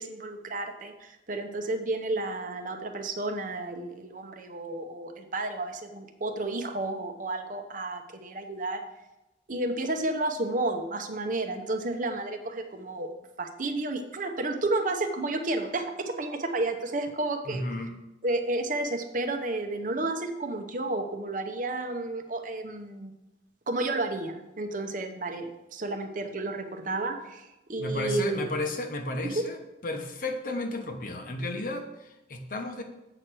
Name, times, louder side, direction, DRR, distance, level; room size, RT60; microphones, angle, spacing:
voice 1, 0.0-8.8 9.5-13.1 13.4-17.6 18.2-23.1 23.7-28.4 29.2-29.4, right 2 dB, 45° right, 5 dB, 0.8 m, -31 dB
voice 2, 17.4-17.9 27.8-32.8, left 2 dB, 50° left, 5 dB, 0.9 m, -33 dB
7.9 x 4.6 x 6.2 m, 0.96 s
head